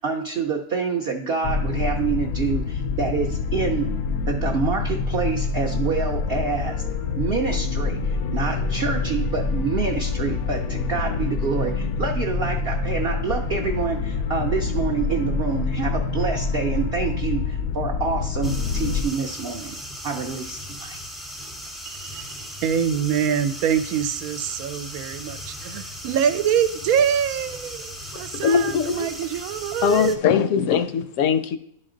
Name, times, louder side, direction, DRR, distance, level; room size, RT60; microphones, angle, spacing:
voice 1, 0.0-3.9 4.3-6.8 7.2-19.8 20.0-21.0, right 5 dB, 55° right, 2 dB, 0.7 m, -27 dB
sound 1, 1.4-19.0, left 4 dB, 90° left, 1.1 m, -26 dB
sound 2, 18.4-30.2, equal, ahead, 0.4 m, -37 dB
voice 2, 21.9-30.2, right 8 dB, 85° right, 12 dB, 1.0 m, -25 dB
voice 3, 28.4-29.1 29.8-31.6, left 7 dB, 70° left, 11 dB, 0.9 m, -21 dB
11.0 x 4.1 x 3.8 m, 0.73 s
omnidirectional pair, 1.5 m